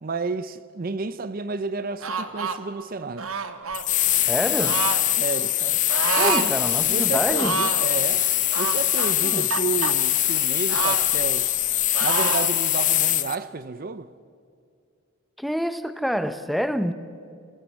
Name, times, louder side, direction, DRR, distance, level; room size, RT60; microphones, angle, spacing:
voice 1, 0.0-3.3 5.2-5.8 6.2-6.5 6.8-11.5 12.0-14.1, right 4 dB, 45° right, 0.5 m, -31 dB
sound 1, 2.0-2.6 3.2-3.8 4.6-5.0 5.9-6.5 6.8-6.9 7.3-7.9 8.5-9.9 10.7-11.7 11.9-12.5, right 5 dB, 85° right, 1.4 m, -28 dB
sound 2, 3.7-13.4, left 13 dB, 35° left, 0.7 m, -23 dB
voice 2, 4.1-4.8 6.1-7.6 9.2-9.5 15.4-16.9, equal, ahead, 0.7 m, -27 dB
28.5 x 19.0 x 8.5 m
head